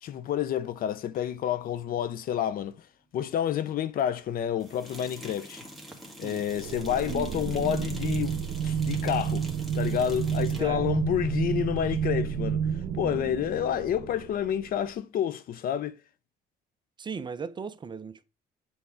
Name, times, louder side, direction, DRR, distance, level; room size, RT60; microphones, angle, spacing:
voice 1, 0.0-2.8 3.1-5.6 6.2-9.5 9.7-12.7 12.9-16.0, left 10 dB, 60° left, 0.7 m, -29 dB
sound 1, 1.1-1.2 4.6-10.7, right 1 dB, ahead, 1.6 m, -45 dB
sound 2, 6.5-14.8, right 8 dB, 60° right, 1.1 m, -30 dB
voice 2, 10.6-11.0 17.0-18.2, right 5 dB, 25° right, 0.6 m, -37 dB
8.0 x 3.4 x 4.8 m
cardioid pair, 110°, 17 cm